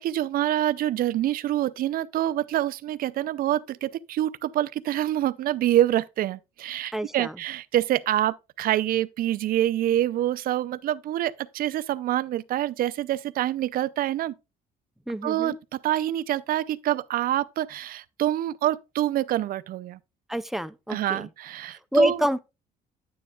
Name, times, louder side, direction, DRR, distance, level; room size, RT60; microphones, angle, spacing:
voice 1, 0.0-14.3 15.2-20.0 20.9-22.2, right 13 dB, 60° right, 0.5 m, -26 dB
voice 2, 6.9-7.4 15.1-15.6 20.3-21.3 21.9-22.4, equal, ahead, 0.5 m, -26 dB
9.3 x 9.3 x 2.3 m
cardioid pair, 110°, 17 cm